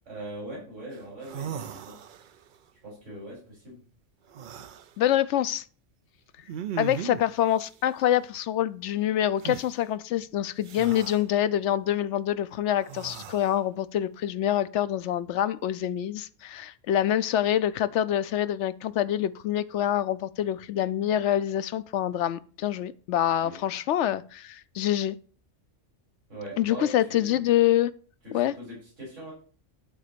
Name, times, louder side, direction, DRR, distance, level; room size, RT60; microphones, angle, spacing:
voice 1, 0.1-2.0 2.8-3.8 23.4-23.6 26.3-27.4 28.2-29.3, right 1 dB, 75° right, 4.4 m, -41 dB
sound 1, 0.9-1.0 1.2-2.5 4.3-4.9 6.5-7.3 9.4-9.7 10.6-11.2 12.8-13.6, right 8 dB, 60° right, 0.5 m, -37 dB
voice 2, 5.0-5.6 6.8-25.2 26.6-27.9 28.3-28.5, left 11 dB, 75° left, 0.9 m, -26 dB
11.5 x 4.1 x 6.8 m
omnidirectional pair, 1.3 m